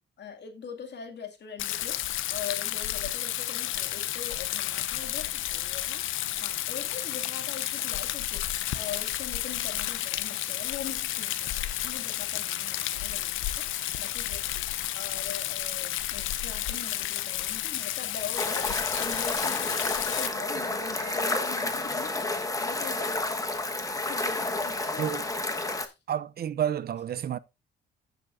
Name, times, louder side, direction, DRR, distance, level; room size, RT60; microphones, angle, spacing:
voice 1, 0.0-6.0 6.4-13.6 14.0-22.3 22.6-23.2 24.1-25.9, left 6 dB, 60° left, 2.3 m, -42 dB
Rain, 1.6-20.3, left 13 dB, 80° left, 0.7 m, -32 dB
sound 1, 18.4-25.9, left 2 dB, 15° left, 1.3 m, -30 dB
sound 2, 18.9-22.0, right 7 dB, 80° right, 1.3 m, -51 dB
voice 2, 26.1-27.4, right 10 dB, 50° right, 0.6 m, -30 dB
15.0 x 6.8 x 2.6 m
cardioid pair, 90°, 20 cm